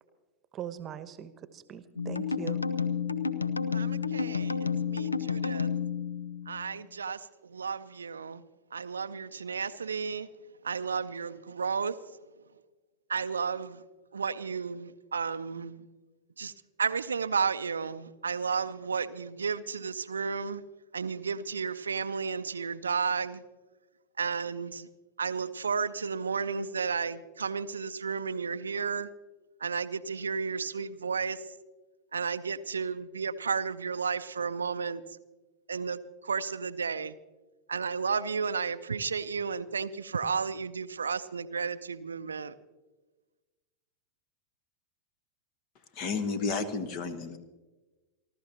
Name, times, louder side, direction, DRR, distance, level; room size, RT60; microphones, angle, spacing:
voice 1, 0.5-2.6, right 10 dB, 30° right, 12 dB, 1.1 m, -41 dB
sound 1, 2.0-6.8, left 6 dB, 80° left, 0.7 m, -31 dB
voice 2, 3.7-5.7 6.5-8.4 8.7-10.3 10.6-12.0 13.1-13.8 14.1-15.8 16.4-16.5 16.8-20.6 20.9-23.4 24.2-24.9 25.2-29.1 29.6-31.5 32.1-35.2 35.7-37.2 37.7-42.5, right 5 dB, 70° right, 13 dB, 0.5 m, -33 dB
voice 3, 45.9-47.4, left 4 dB, 40° left, 10 dB, 1.4 m, -32 dB
28.5 x 12.5 x 2.9 m, 1.2 s
figure-of-eight pair, 90°, 0 cm